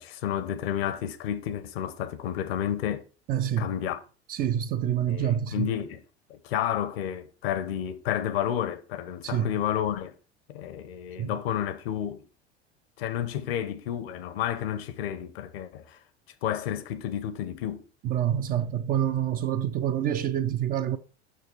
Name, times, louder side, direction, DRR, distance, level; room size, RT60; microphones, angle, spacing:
voice 1, 0.0-3.1 3.6-4.0 5.1-6.0 6.3-10.1 10.5-12.2 13.0-16.0 16.4-17.8, left 10 dB, 60° left, 0.9 m, -31 dB
voice 2, 3.3-3.7 4.3-5.7 9.2-9.5 11.2-11.3 18.0-21.0, right 10 dB, 25° right, 0.4 m, -27 dB
6.6 x 6.3 x 3.1 m
figure-of-eight pair, 80°, 34 cm